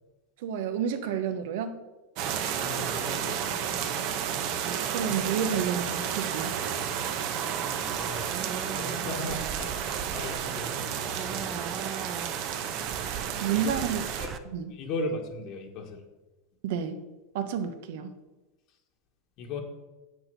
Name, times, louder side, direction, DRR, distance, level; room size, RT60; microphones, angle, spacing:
voice 1, 0.4-1.8 4.9-6.6 13.4-14.0 14.4-14.7 16.6-17.0 17.3-18.1, right 7 dB, 70° right, 9 dB, 1.2 m, -30 dB
sound 1, 2.2-14.3, right 8 dB, 50° right, 1.1 m, -32 dB
voice 2, 2.6-3.7 7.7-8.4 8.7-9.7 10.1-11.6 13.5-13.6 14.2-14.3 14.7-16.0 19.4-19.6, left 2 dB, 45° left, 2 dB, 1.6 m, -37 dB
sound 2, 6.4-14.4, right 7 dB, 30° right, 0.6 m, -39 dB
8.1 x 6.8 x 6.9 m, 1.1 s
supercardioid pair, 145°, 0 cm